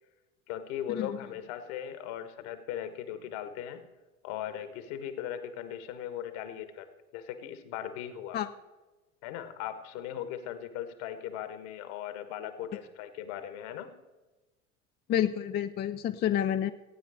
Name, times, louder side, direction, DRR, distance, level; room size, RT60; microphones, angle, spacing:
voice 1, 0.5-3.9 4.2-6.9 7.1-8.4 9.2-13.9, left 10 dB, 60° left, 10 dB, 1.5 m, -38 dB
voice 2, 15.1-16.7, left 10 dB, 25° left, 9 dB, 0.4 m, -29 dB
16.0 x 9.3 x 4.9 m, 1.1 s
figure-of-eight pair, 70°, 40 cm